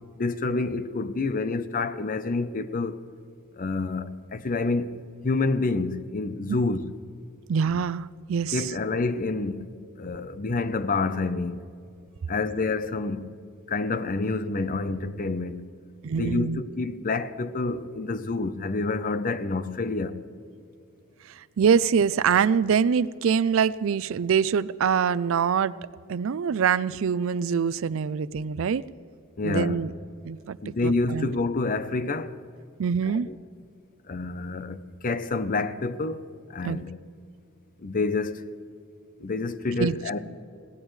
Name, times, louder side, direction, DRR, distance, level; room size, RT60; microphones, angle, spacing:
voice 1, 0.2-3.0 3.6-5.0 5.2-6.9 8.5-9.7 10.0-11.7 12.3-13.3 13.7-15.6 16.2-20.2 29.4-29.8 30.6-32.4 33.1-33.4 34.1-34.8 35.0-36.9 37.8-38.4 39.2-40.2, left 3 dB, 40° left, 0.6 m, -28 dB
voice 2, 7.5-8.7 16.0-16.6 21.3-25.8 26.1-28.8 29.4-29.9 30.2-31.3 32.8-33.3 36.6-36.8 39.8-40.2, right 6 dB, 65° right, 0.4 m, -24 dB
21.5 x 17.5 x 3.2 m
head